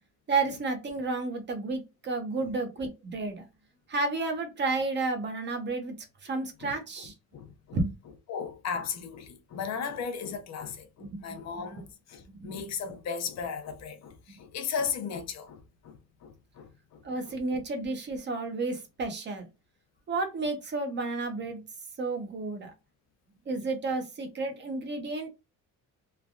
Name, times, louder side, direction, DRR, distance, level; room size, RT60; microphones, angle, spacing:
voice 1, 0.3-3.4 3.9-5.9 6.2-7.1 7.7-7.9 11.0-11.2 12.3-12.5 14.3-14.4 17.0-19.4 20.1-21.6 22.0-22.7 23.5-25.3, right 3 dB, 35° right, 0.8 m, -31 dB
voice 2, 7.3-7.8 8.3-17.4, left 6 dB, 60° left, 0.7 m, -36 dB
3.2 x 2.3 x 2.4 m
cardioid pair, 150°, 31 cm